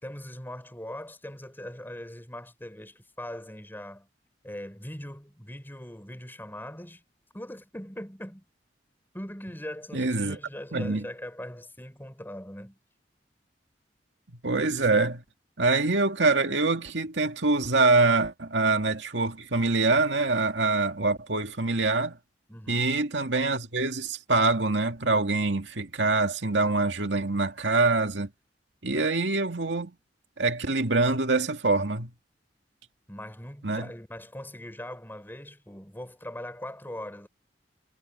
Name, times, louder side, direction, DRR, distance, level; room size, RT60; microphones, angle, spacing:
voice 1, 0.0-4.1 4.4-7.0 7.3-8.4 9.1-12.8 22.5-22.9 33.1-37.3, left 1 dB, 10° left, 4.5 m, -41 dB
voice 2, 9.9-10.4 10.7-11.0 14.4-15.2 15.6-22.2 22.7-28.3 28.8-29.9 30.4-32.1 33.6-33.9, right 3 dB, 80° right, 2.2 m, -25 dB
head